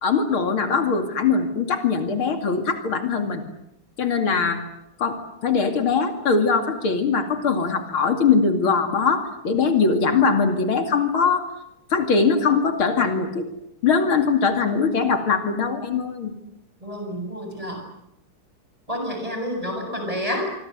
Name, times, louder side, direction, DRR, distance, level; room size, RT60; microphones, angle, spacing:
voice 1, 0.0-3.4 4.0-4.6 5.0-11.4 11.9-13.5 13.8-16.3, left 5 dB, 70° left, 6 dB, 3.2 m, -21 dB
voice 2, 16.8-17.8 18.9-20.5, equal, 15° right, 4 dB, 7.6 m, -29 dB
27.0 x 24.5 x 8.0 m, 0.83 s
omnidirectional pair, 2.4 m